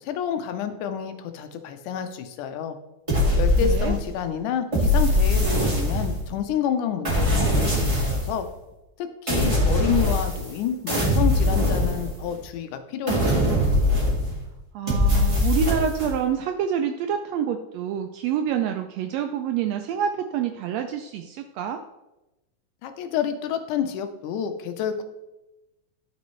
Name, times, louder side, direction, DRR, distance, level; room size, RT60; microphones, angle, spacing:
voice 1, 0.0-2.8 3.4-8.5 9.0-13.4 22.8-25.0, left 8 dB, 85° left, 8 dB, 2.3 m, -29 dB
sound 1, 3.1-4.2 4.7-6.3 7.0-8.4 9.3-10.6 10.9-12.5 13.1-14.4 14.9-16.1, left 1 dB, 15° right, 1.5 m, -22 dB
voice 2, 3.6-4.0 14.7-21.8, right 8 dB, 85° right, 5 dB, 1.5 m, -27 dB
12.5 x 5.3 x 3.1 m, 0.97 s
omnidirectional pair, 3.5 m